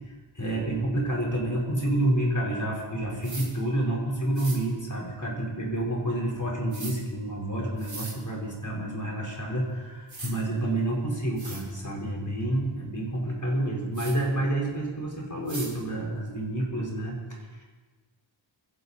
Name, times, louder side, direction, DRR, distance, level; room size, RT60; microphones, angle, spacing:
voice 1, 0.4-17.6, right 1 dB, 40° left, -3 dB, 4.2 m, -29 dB
sound 1, 3.2-3.5 4.3-4.6 6.7-6.9 7.8-8.2 9.6-9.7 10.1-10.3 11.0-11.1 11.4-11.6 13.9-14.2 15.5-15.7, right 2 dB, 70° right, 2.9 m, -39 dB
24.0 x 11.0 x 4.2 m, 1.3 s
wide cardioid pair, 45°, 48 cm